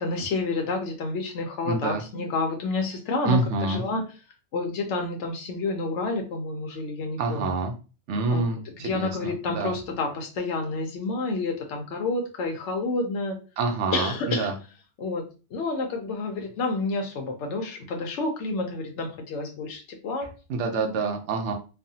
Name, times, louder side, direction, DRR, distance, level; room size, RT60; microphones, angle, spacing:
voice 1, 0.0-3.4 3.7-4.0 4.5-7.5 8.3-13.4 13.9-14.5 15.0-15.2 15.5-20.3, left 3 dB, 80° left, 3 dB, 0.9 m, -29 dB
voice 2, 1.6-2.0 3.2-3.8 7.2-7.7 8.1-9.7 13.6-14.5 20.5-21.5, right 3 dB, 80° right, 3 dB, 0.9 m, -27 dB
3.2 x 2.1 x 2.6 m, 0.33 s
omnidirectional pair, 1.2 m